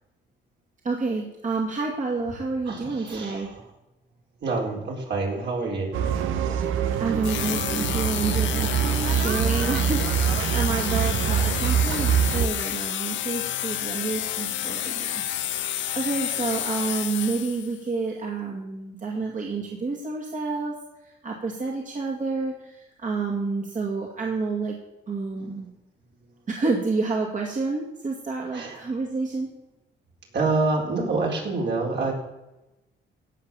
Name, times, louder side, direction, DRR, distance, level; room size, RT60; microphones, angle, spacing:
voice 1, 0.8-3.5 6.6-8.7 9.1-20.8 21.2-24.8 25.1-25.7 26.5-29.5, right 3 dB, 40° right, -1 dB, 2.3 m, -29 dB
voice 2, 2.6-3.7 4.4-6.0 25.4-25.7 26.1-26.5 28.5-28.9 30.3-32.1, right 3 dB, 60° right, -1 dB, 4.2 m, -28 dB
sound 1, 5.9-12.5, right 8 dB, 90° right, 1.1 m, -24 dB
sound 2, 7.2-17.8, left 12 dB, 70° left, 0.7 m, -30 dB
16.5 x 5.8 x 7.1 m, 0.98 s
cardioid pair, 90°, 20 cm